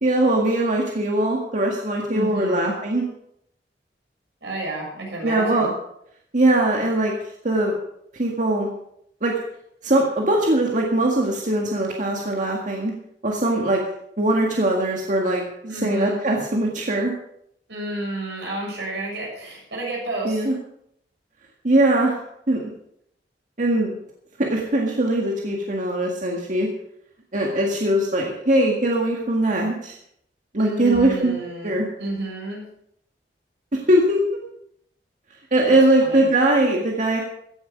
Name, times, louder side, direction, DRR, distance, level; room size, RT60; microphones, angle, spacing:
voice 1, 0.0-3.0 5.2-5.7 6.3-7.1 7.4-7.8 8.1-8.7 9.2-9.3 9.8-12.9 13.2-13.8 14.2-17.1 20.3-20.5 21.6-22.2 22.5-22.6 23.6-23.9 24.4-26.7 27.3-29.9 30.5-31.3 31.6-31.9 33.7-34.2 35.5-37.2, right 1 dB, 45° right, 0 dB, 1.8 m, -21 dB
voice 2, 2.1-2.7 4.4-5.7 15.7-16.2 17.7-20.5 30.6-32.6 35.7-36.3, right 1 dB, 80° right, -3 dB, 7.3 m, -31 dB
15.5 x 10.0 x 5.2 m, 0.72 s
head